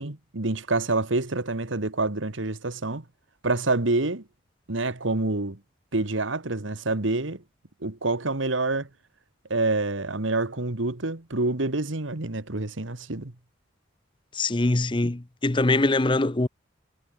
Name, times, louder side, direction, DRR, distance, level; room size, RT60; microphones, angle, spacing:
voice 1, 0.0-3.0 3.4-4.2 4.7-5.6 5.9-7.4 7.8-8.9 9.5-13.3, right 2 dB, 80° right, 1.8 m, -27 dB
voice 2, 14.3-16.5, left 2 dB, 25° left, 0.7 m, -23 dB
head